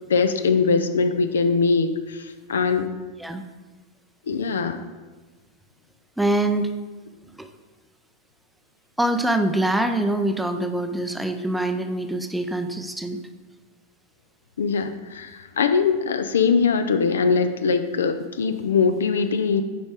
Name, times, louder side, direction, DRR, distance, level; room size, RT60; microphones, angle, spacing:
voice 1, 0.1-2.9 4.3-4.8 14.6-19.6, left 5 dB, 65° left, 9 dB, 0.4 m, -22 dB
voice 2, 6.2-6.8 7.4-7.5 9.0-13.2, right 1 dB, 5° right, 7 dB, 0.5 m, -24 dB
8.7 x 5.0 x 3.5 m, 1.3 s
figure-of-eight pair, 90°, 0 cm